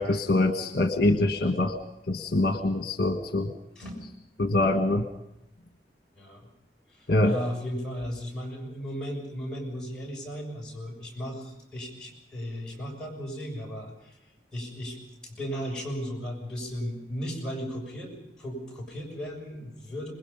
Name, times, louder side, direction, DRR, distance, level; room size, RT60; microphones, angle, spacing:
voice 1, 0.0-1.7 2.1-3.5 4.4-5.0 7.1-7.3, left 2 dB, 60° left, 5 dB, 1.5 m, -24 dB
voice 2, 6.9-14.2 14.5-15.0 15.2-20.1, equal, 5° left, -4 dB, 6.8 m, -36 dB
27.0 x 21.0 x 5.5 m, 0.84 s
head